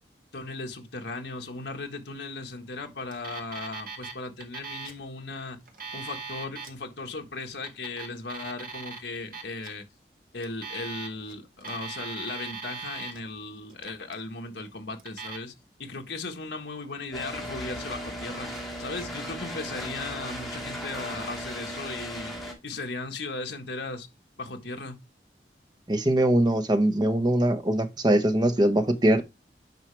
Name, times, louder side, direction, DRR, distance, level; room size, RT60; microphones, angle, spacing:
voice 1, 0.3-5.6 5.9-9.9 10.3-15.5 15.8-18.5 18.8-22.3 22.6-24.1 24.4-25.0, left 3 dB, 70° left, 1.6 m, -37 dB
Alarm, 3.1-4.1 4.4-5.0 5.6-6.7 7.5-9.0 9.3-9.7 10.4-11.3 11.6-13.2 13.7-14.2 15.0-15.4, right 4 dB, 50° right, 1.9 m, -39 dB
sound 1, 17.1-22.5, equal, ahead, 2.5 m, -36 dB
voice 2, 25.9-29.2, right 1 dB, 25° right, 1.1 m, -22 dB
9.1 x 5.7 x 3.4 m
head